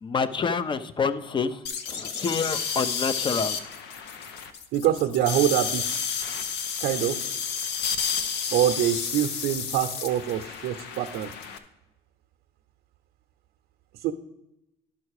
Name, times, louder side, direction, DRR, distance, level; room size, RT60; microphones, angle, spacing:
voice 1, 0.0-3.6, left 5 dB, 30° left, 14 dB, 0.6 m, -28 dB
sound 1, 1.7-11.6, left 6 dB, 90° left, 0.9 m, -31 dB
voice 2, 4.7-6.1 6.8-7.2 8.5-11.3 14.0-14.1, right 11 dB, 80° right, 5 dB, 0.7 m, -25 dB
11.5 x 5.9 x 4.8 m, 0.94 s
cardioid pair, 110°, 17 cm